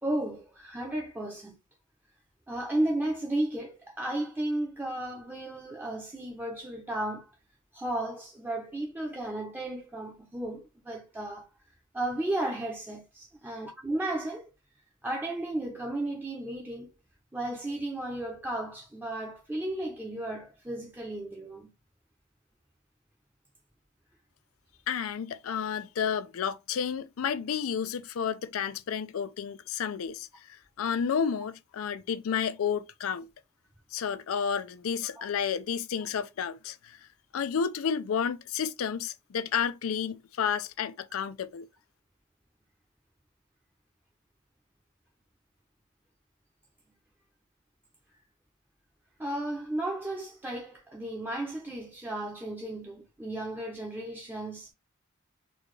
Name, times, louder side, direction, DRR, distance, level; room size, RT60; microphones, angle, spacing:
voice 1, 0.0-1.5 2.5-7.3 7.7-11.5 11.9-14.5 15.0-16.9 17.3-21.7 35.0-35.3 49.2-54.7, right 1 dB, 10° right, 0.6 m, -34 dB
voice 2, 24.9-33.3 33.9-37.0 37.3-41.7, left 7 dB, 90° left, 0.4 m, -31 dB
3.9 x 2.3 x 3.1 m
head